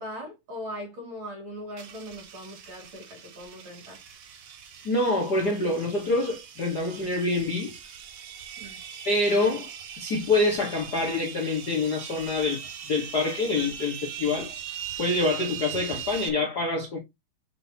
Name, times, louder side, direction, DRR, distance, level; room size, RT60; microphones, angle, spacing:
voice 1, 0.0-4.0 8.6-8.8, equal, 35° right, 3.5 m, -40 dB
sound 1, 1.8-16.3, right 8 dB, 60° right, 1.9 m, -40 dB
voice 2, 4.8-7.7 9.0-9.7 10.0-12.6 12.9-14.5 15.0-17.0, left 2 dB, 50° left, 1.1 m, -26 dB
7.3 x 6.6 x 2.9 m
omnidirectional pair, 4.3 m